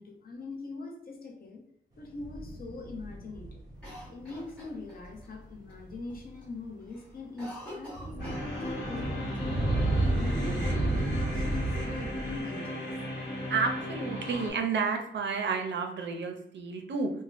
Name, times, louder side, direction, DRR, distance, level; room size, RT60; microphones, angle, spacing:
voice 1, 0.0-1.6 2.0-3.6 4.1-9.6 10.1-12.9, left 3 dB, 50° left, 2 dB, 0.5 m, -42 dB
sound 1, 2.0-4.2 5.0-5.1 5.9-6.3 7.9-12.4, right 1 dB, 20° right, 0.6 m, -31 dB
Cough, 3.8-5.3 5.7-5.8 6.1-6.5 6.8-9.1 9.3-9.4 10.2-11.0, left 1 dB, 5° left, 1.2 m, -47 dB
sound 2, 8.2-14.5, left 1 dB, 70° left, 1.1 m, -36 dB
voice 2, 13.5-17.1, right 5 dB, 70° right, 4 dB, 0.5 m, -31 dB
3.4 x 2.1 x 2.4 m, 0.73 s
wide cardioid pair, 165°, 19 cm